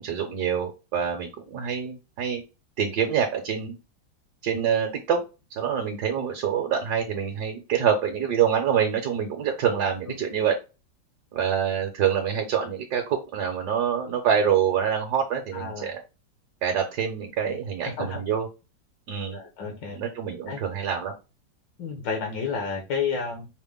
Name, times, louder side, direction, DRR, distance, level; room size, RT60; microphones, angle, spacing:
voice 1, 0.0-2.4 2.8-3.8 4.4-5.2 5.6-10.6 11.3-16.0 16.6-18.5 19.1-19.4 19.9-21.1, right 8 dB, 65° right, 3 dB, 1.2 m, -26 dB
voice 2, 15.5-15.9 17.4-17.6 17.8-18.2 19.3-20.0 20.5-20.6 21.8-23.5, left 5 dB, 75° left, 2 dB, 1.6 m, -31 dB
5.1 x 2.1 x 3.5 m, 0.29 s
omnidirectional pair, 2.1 m